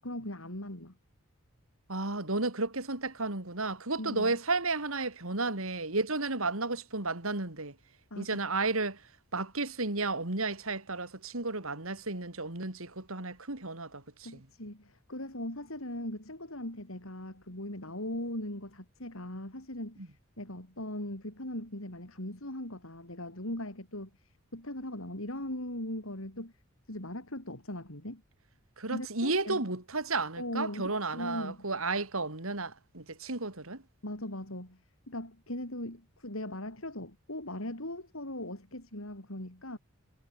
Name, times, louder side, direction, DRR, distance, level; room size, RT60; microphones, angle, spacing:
voice 1, 0.0-0.9 4.0-4.3 8.1-8.4 14.2-26.5 26.9-28.2 28.9-29.6 30.4-31.6 34.0-34.8 35.1-39.8, left 1 dB, 70° left, 5.3 m, -39 dB
voice 2, 1.9-7.8 8.2-9.0 9.3-14.5 28.8-33.8, right 3 dB, 75° right, 3.6 m, -33 dB
head